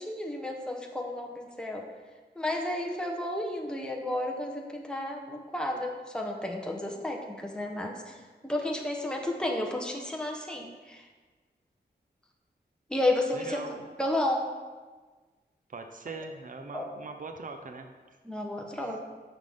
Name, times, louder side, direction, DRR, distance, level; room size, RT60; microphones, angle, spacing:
voice 1, 0.0-1.8 2.4-8.1 8.4-11.0 12.9-13.6 14.0-14.5 16.7-16.8 18.2-19.1, left 1 dB, 5° left, 1 dB, 1.0 m, -32 dB
voice 2, 13.3-13.9 15.7-18.2 18.7-19.0, right 3 dB, 50° right, 5 dB, 0.7 m, -42 dB
11.5 x 5.9 x 3.6 m, 1.4 s
wide cardioid pair, 110°, 18 cm